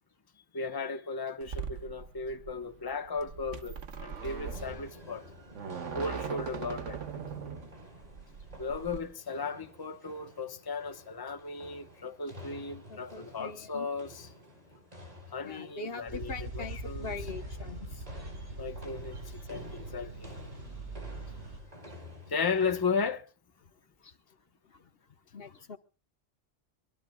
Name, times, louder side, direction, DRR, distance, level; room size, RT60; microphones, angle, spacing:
voice 1, 0.5-5.3 5.9-7.0 8.6-14.3 15.3-17.1 18.6-20.3 22.3-23.2, left 4 dB, 20° left, 1.0 m, -35 dB
sound 1, 1.4-9.0, right 6 dB, 85° right, 1.5 m, -40 dB
sound 2, 4.2-23.1, equal, 35° right, 4.8 m, -51 dB
voice 2, 12.9-13.9 15.4-18.0 24.0-24.1 24.7-24.8 25.3-25.8, left 4 dB, 55° left, 1.2 m, -42 dB
sound 3, 16.1-21.6, right 2 dB, 70° right, 4.6 m, -42 dB
24.5 x 21.5 x 2.3 m
omnidirectional pair, 1.2 m